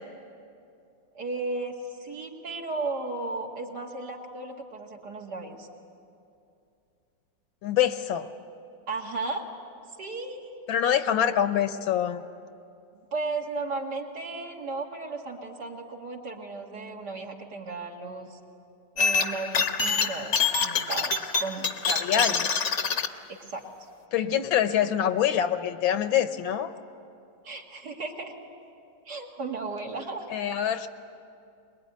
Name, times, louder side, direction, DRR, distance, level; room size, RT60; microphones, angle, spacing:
voice 1, 1.1-5.7 8.9-9.5 10.0-10.7 12.9-18.4 18.9-21.7 22.1-22.3 23.3-23.6 27.4-28.3 29.1-30.3, right 3 dB, 55° right, 0 dB, 2.7 m, -35 dB
voice 2, 7.6-8.3 10.7-12.2 21.9-22.5 24.1-26.7 30.3-30.9, left 9 dB, 80° left, 10 dB, 1.7 m, -25 dB
sound 1, 19.0-23.1, left 5 dB, 45° left, 1.0 m, -26 dB
23.0 x 21.5 x 9.4 m, 2.6 s
omnidirectional pair, 2.2 m